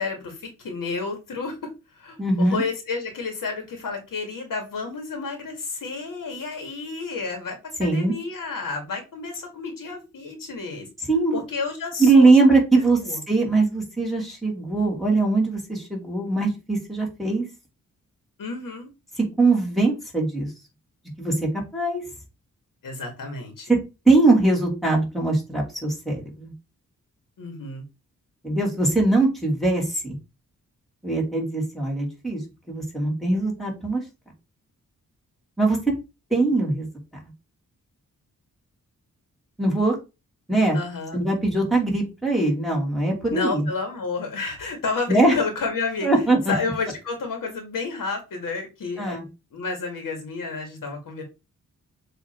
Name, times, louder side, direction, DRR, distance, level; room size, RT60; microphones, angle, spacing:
voice 1, 0.0-10.9 11.3-12.3 13.0-13.2 18.4-18.9 22.8-23.7 27.4-27.8 40.7-41.2 43.3-46.1 46.5-49.2 49.5-51.2, left 4 dB, 90° left, 4 dB, 2.1 m, -31 dB
voice 2, 2.2-2.6 7.8-8.2 11.1-11.4 12.0-17.4 19.4-20.5 21.2-22.0 23.7-23.8 24.0-26.5 28.4-30.2 31.0-34.0 35.6-35.8 36.3-36.9 39.6-39.9 40.5-40.8 41.1-43.7 45.1-45.3 46.0-46.5 49.0-49.2, right 2 dB, ahead, -2 dB, 2.8 m, -21 dB
7.1 x 3.3 x 4.5 m, 0.27 s
wide cardioid pair, 120°, 32 cm